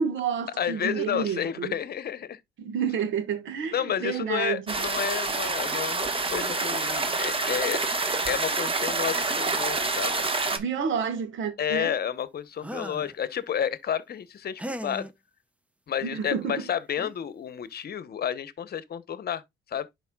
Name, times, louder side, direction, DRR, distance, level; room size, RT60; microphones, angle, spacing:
voice 1, 0.0-1.7 2.6-4.7 10.5-11.9 16.0-16.6, right 7 dB, 75° right, 1.5 m, -30 dB
voice 2, 0.6-2.4 3.7-7.8 8.3-10.2 11.6-15.1 15.9-19.4 19.7-19.9, left 9 dB, 50° left, 0.9 m, -31 dB
Streaming river waters and small waterfall, 4.7-10.6, right 3 dB, 25° right, 1.3 m, -27 dB
sound 1, 12.6-13.1 14.6-15.1 16.5-16.6 17.0-17.2, right 1 dB, 5° right, 0.7 m, -37 dB
11.0 x 4.7 x 2.3 m
cardioid pair, 90°, 20 cm